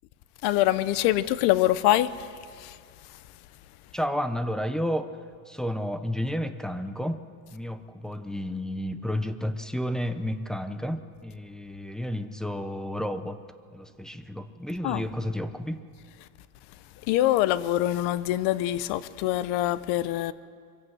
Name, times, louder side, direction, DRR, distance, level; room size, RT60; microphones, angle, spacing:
voice 1, 0.4-3.4 14.8-15.1 16.7-20.3, left 14 dB, 85° left, 0.9 m, -25 dB
voice 2, 3.9-5.2 5.5-7.2 7.5-13.4 13.7-15.8, equal, ahead, 0.6 m, -31 dB
23.5 x 16.5 x 7.9 m
cardioid pair, 170°, 39 cm